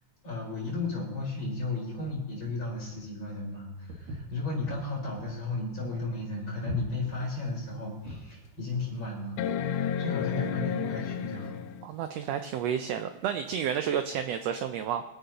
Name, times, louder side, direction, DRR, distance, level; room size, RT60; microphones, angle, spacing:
voice 1, 0.2-11.6, left 3 dB, 35° left, -4 dB, 5.0 m, -34 dB
Walk footsteps, 3.9-8.4, equal, 65° right, 2.9 m, -40 dB
sound 1, 7.2-7.3 7.9-8.0 9.4-11.9 13.6-13.7, left 8 dB, 85° left, 1.4 m, -31 dB
voice 2, 11.8-15.0, right 8 dB, 80° right, 8 dB, 1.5 m, -31 dB
26.0 x 9.1 x 2.9 m, 1.0 s
omnidirectional pair, 3.5 m